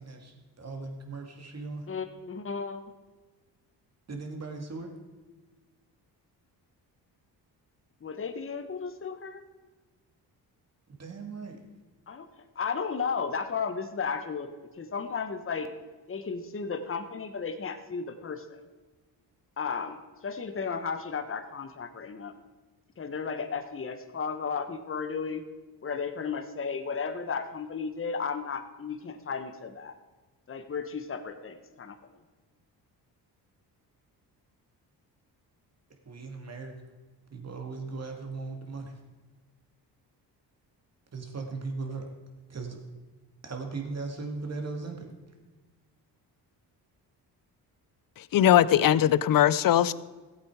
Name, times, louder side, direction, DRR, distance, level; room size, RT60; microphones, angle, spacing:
voice 1, 0.0-1.9 4.1-4.9 11.0-11.6 36.1-36.7 37.3-38.9 41.1-42.1 42.5-42.8 43.4-45.1, right 3 dB, 40° right, 3 dB, 2.4 m, -38 dB
voice 2, 1.9-2.8 8.0-9.4 12.1-12.3 12.5-15.7 16.1-18.7 19.6-22.3 23.0-25.4 25.8-29.9 30.5-32.0, left 5 dB, 30° left, 8 dB, 1.1 m, -34 dB
voice 3, 48.2-49.9, left 11 dB, 55° left, 17 dB, 0.6 m, -21 dB
14.5 x 8.2 x 4.9 m, 1.3 s
cardioid pair, 80°, 42 cm